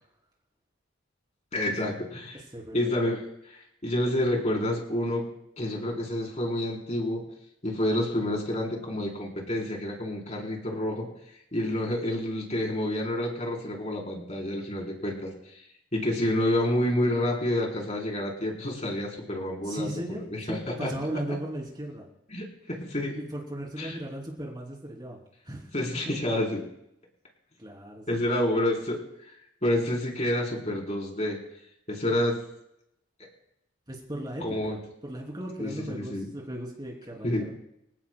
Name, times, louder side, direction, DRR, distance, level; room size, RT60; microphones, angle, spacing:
voice 1, 1.5-2.4 2.7-5.3 5.6-7.2 7.6-11.1 11.5-15.3 15.9-20.9 22.3-23.2 23.8-24.0 25.7-26.6 28.1-29.3 29.6-31.4 31.9-32.4 34.4-34.8 35.6-36.3 37.2-37.5, left 1 dB, 35° left, -1 dB, 4.2 m, -29 dB
voice 2, 2.5-3.0 19.6-22.1 23.1-25.2 25.4-25.7 27.6-28.4 33.9-37.5, right 1 dB, 25° right, -2 dB, 3.4 m, -37 dB
26.5 x 17.0 x 2.3 m, 0.81 s
head